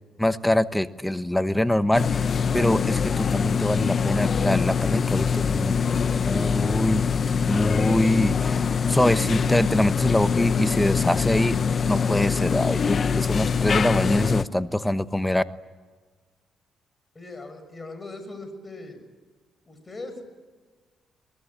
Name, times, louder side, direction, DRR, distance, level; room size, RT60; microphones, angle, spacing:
voice 1, 0.2-2.2 2.5-5.8 6.2-7.0 7.5-11.6 11.9-15.4, left 1 dB, 5° left, 12 dB, 1.0 m, -24 dB
sound 1, 1.9-14.4, left 6 dB, 45° left, 0.8 m, -24 dB
voice 2, 17.1-19.0 19.7-20.2, left 2 dB, 25° left, 8 dB, 6.4 m, -39 dB
23.5 x 21.0 x 9.8 m, 1.4 s
cardioid pair, 90°, 0 cm